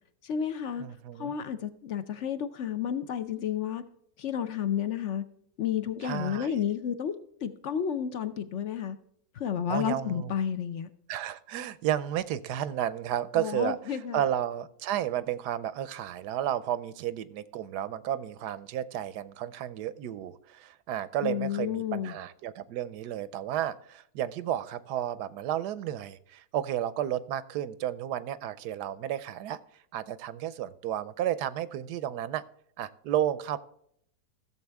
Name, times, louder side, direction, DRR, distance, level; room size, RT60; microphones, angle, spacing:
voice 1, 0.2-0.8 1.2-3.8 4.2-5.2 5.6-7.1 7.4-9.0 9.4-10.9 13.4-14.2 21.2-22.2, left 8 dB, 55° left, 11 dB, 0.9 m, -31 dB
voice 2, 0.8-1.3 6.0-6.6 9.7-10.3 11.1-29.6 29.9-32.4 32.8-33.6, right 11 dB, 80° right, 16 dB, 1.2 m, -32 dB
15.0 x 7.1 x 3.4 m, 0.70 s
omnidirectional pair, 1.8 m